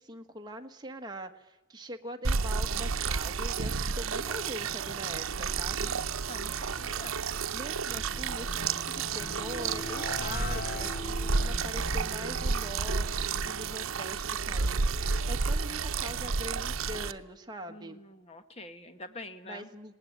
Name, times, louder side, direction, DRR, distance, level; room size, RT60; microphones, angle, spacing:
voice 1, 0.0-5.9 7.5-18.0 19.4-20.0, equal, 20° right, 4 dB, 1.4 m, -43 dB
sound 1, 2.2-17.1, right 5 dB, 80° right, 0.8 m, -31 dB
voice 2, 5.7-7.2 17.7-19.7, left 2 dB, 30° left, 9 dB, 1.4 m, -46 dB
sound 2, 7.0-14.1, left 2 dB, 45° left, 0.8 m, -42 dB
19.5 x 18.5 x 9.4 m, 1.0 s
head